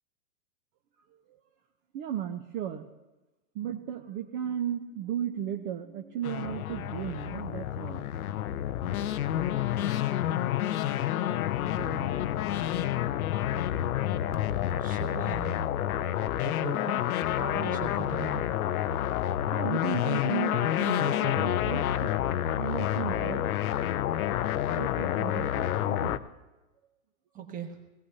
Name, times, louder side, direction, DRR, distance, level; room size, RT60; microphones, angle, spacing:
voice 1, 1.9-2.9 3.5-8.2 19.4-23.4 24.8-26.2, right 10 dB, 40° right, 2 dB, 0.9 m, -35 dB
sound 1, 6.2-26.2, left 12 dB, 70° left, 0.7 m, -29 dB
voice 2, 11.6-12.1 14.8-15.6 16.3-17.0 17.4-18.5 27.3-27.8, right 6 dB, 20° right, 3 dB, 1.6 m, -39 dB
20.0 x 16.5 x 2.8 m, 1.1 s
hypercardioid pair, 135°, 44 cm